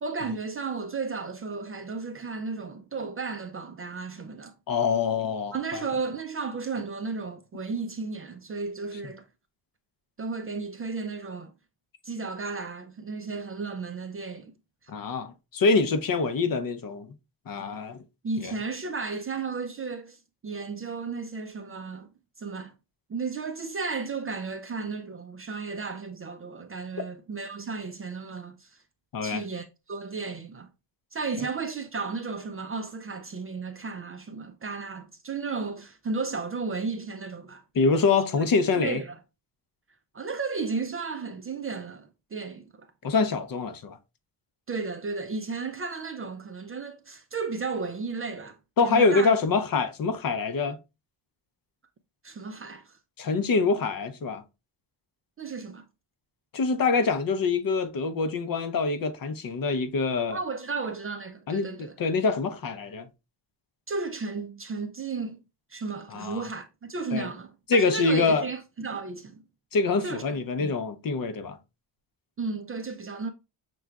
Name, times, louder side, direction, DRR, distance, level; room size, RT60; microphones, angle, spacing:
voice 1, 0.0-4.5 5.5-9.2 10.2-11.5 12.0-14.5 14.8-14.9 18.2-22.1 22.4-22.7 23.1-28.8 29.2-30.7 31.1-37.6 38.8-39.2 40.1-42.9 44.7-48.6 48.8-49.3 52.2-53.0 55.4-55.8 60.3-61.9 63.9-65.4 65.7-69.4 70.0-70.2 70.6-70.7 72.4-73.3, right 4 dB, 30° right, 0.4 m, -34 dB
voice 2, 4.7-5.8 14.9-17.1 17.5-18.0 18.4-18.6 29.1-29.4 37.7-39.0 43.0-44.0 48.8-50.8 53.2-54.4 56.5-60.4 61.5-63.1 66.1-66.5 67.1-67.3 67.7-68.5 69.7-71.6, left 4 dB, 45° left, 0.7 m, -25 dB
5.9 x 3.1 x 2.3 m
cardioid pair, 100°, 47 cm